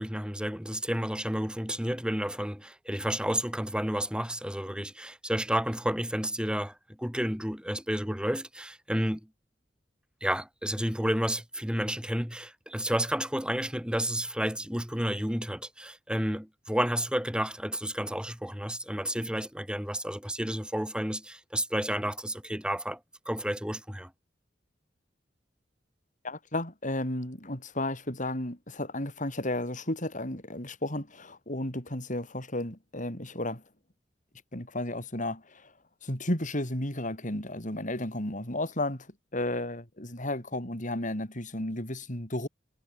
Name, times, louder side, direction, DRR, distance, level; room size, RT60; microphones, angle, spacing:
voice 1, 0.0-9.2 10.2-23.0 23.3-24.1, equal, 5° right, 4.7 m, -31 dB
voice 2, 26.2-33.6 34.5-35.7 36.0-39.1 39.3-42.5, left 1 dB, 45° left, 6.7 m, -33 dB
head